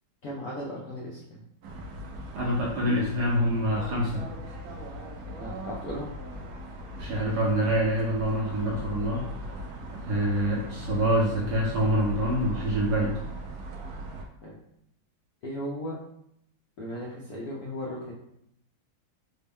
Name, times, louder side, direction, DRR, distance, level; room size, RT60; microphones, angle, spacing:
voice 1, 0.2-1.4 5.4-6.1 14.4-14.6 15.4-16.0 16.8-18.1, equal, 70° left, -5 dB, 0.9 m, -36 dB
sound 1, 1.6-14.2, equal, 85° right, 0.8 m, -39 dB
voice 2, 2.3-4.3 7.0-9.2 9.9-13.1, equal, 70° right, -3 dB, 1.1 m, -26 dB
4.2 x 2.0 x 3.4 m, 0.75 s
omnidirectional pair, 2.2 m